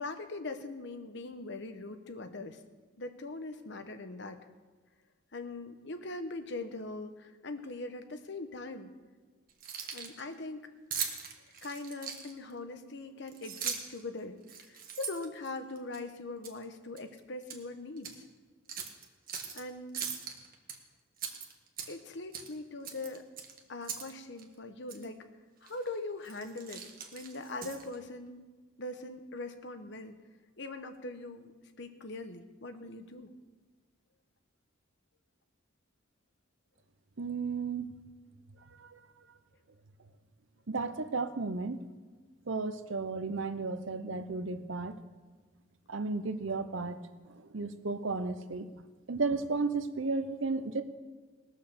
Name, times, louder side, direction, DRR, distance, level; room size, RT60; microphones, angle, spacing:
voice 1, 0.0-2.6 3.0-4.4 5.3-8.9 9.9-10.7 11.6-14.4 14.7-18.2 19.5-20.0 21.9-23.2 23.7-25.2 25.6-26.8 27.1-28.4 28.8-30.2 30.6-33.3, left 2 dB, 60° left, 8 dB, 1.0 m, -41 dB
Keys jangling, 9.5-10.2 10.9-12.5 13.3-14.0 14.4-16.0 16.4-16.6 17.0-17.6 18.0-18.1 18.7-19.6 19.9-20.8 21.2-22.1 22.3-22.5 22.8-24.1 24.4-24.5 24.9-25.1 25.7-25.9 26.2-28.0, right 7 dB, 45° right, 1.4 m, -40 dB
voice 2, 37.2-37.9 38.8-39.0 40.7-41.9 42.5-45.0 45.9-47.0 47.3-48.7 49.1-50.8, right 3 dB, 75° right, 10 dB, 0.8 m, -34 dB
19.5 x 6.5 x 6.8 m, 1.3 s
head